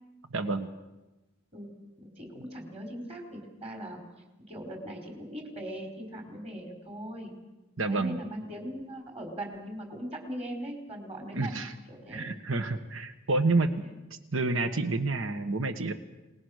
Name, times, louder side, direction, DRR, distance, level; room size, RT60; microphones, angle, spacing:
voice 1, 0.3-0.7 7.8-8.2 11.3-11.7 12.1-13.7 14.3-15.9, right 3 dB, 75° right, 9 dB, 1.4 m, -28 dB
voice 2, 2.0-4.0 4.5-7.3 7.9-11.6 11.9-12.3 13.8-14.0, right 1 dB, 30° right, 3 dB, 4.7 m, -40 dB
29.5 x 19.5 x 6.6 m, 1.1 s
head